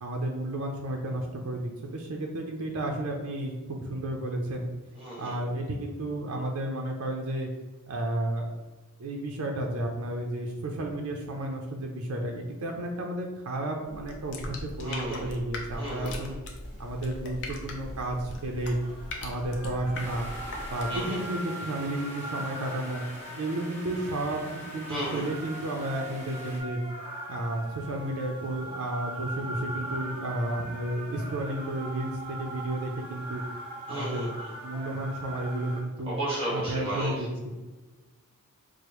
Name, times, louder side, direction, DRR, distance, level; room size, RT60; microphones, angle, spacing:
voice 1, 0.0-4.7 5.2-7.5 7.9-8.5 9.0-16.3 16.8-18.8 19.2-20.3 20.7-23.0 23.4-24.4 24.7-26.8 27.3-33.4 33.9-34.3 34.6-36.2 36.5-37.3, right 1 dB, 70° right, 1 dB, 0.5 m, -32 dB
voice 2, 5.0-5.3 14.8-15.3 15.8-16.3 20.9-21.2 24.9-25.3 33.9-34.5 36.1-37.1, right 1 dB, 25° right, -6 dB, 1.3 m, -33 dB
sound 1, 13.8-21.1, left 1 dB, 55° left, 0.5 m, -40 dB
sound 2, 16.8-35.8, right 1 dB, 45° right, 1.4 m, -41 dB
sound 3, 19.9-26.6, equal, 10° left, 0.8 m, -44 dB
4.7 x 2.0 x 2.9 m, 1.2 s
head